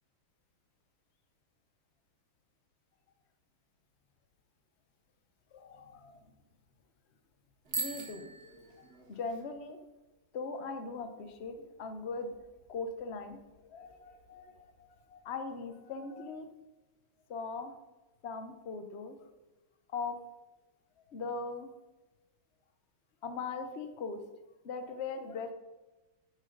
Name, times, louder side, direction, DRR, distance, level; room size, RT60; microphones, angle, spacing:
voice 1, 5.5-6.2 7.8-9.8 10.3-12.4 12.7-13.4 13.7-16.5 17.3-17.7 18.2-19.2 19.9-20.2 21.1-21.7 23.2-24.2 24.6-25.5, left 4 dB, 45° left, 7 dB, 0.9 m, -40 dB
Bicycle bell, 7.6-9.4, right 4 dB, 50° right, 2.2 m, -40 dB
9.7 x 8.8 x 3.9 m, 1.1 s
omnidirectional pair, 2.2 m